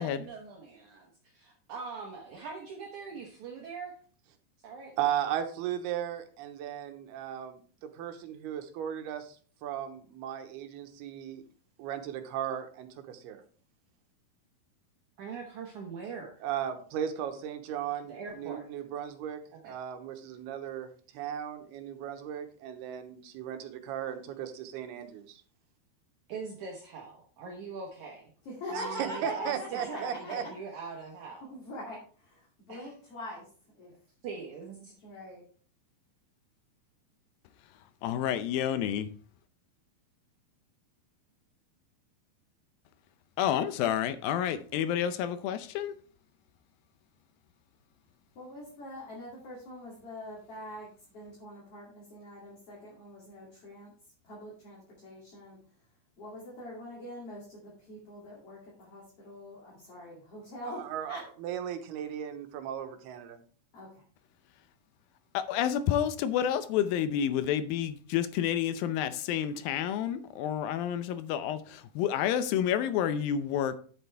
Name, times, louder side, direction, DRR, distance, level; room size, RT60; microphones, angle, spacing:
voice 1, 0.0-4.0 4.6-4.9 15.2-16.3 18.1-18.7 19.6-19.7 26.3-28.3 28.7-31.5 32.7-32.9 34.2-34.9, right 5 dB, 60° right, 2.3 m, -42 dB
voice 2, 5.0-9.4 9.6-11.4 11.8-13.4 16.4-25.4 28.7-30.4 60.6-63.4, right 10 dB, 85° right, 3.0 m, -36 dB
voice 3, 28.4-30.5 31.5-33.5 33.7-33.9 34.3-34.5 35.0-35.4 48.3-53.9 54.2-55.6 56.2-61.2 63.7-64.0, left 1 dB, 40° left, 3.2 m, -43 dB
voice 4, 38.0-39.1 43.4-45.9 65.3-73.8, left 10 dB, 80° left, 2.3 m, -29 dB
10.5 x 8.2 x 3.4 m
omnidirectional pair, 4.5 m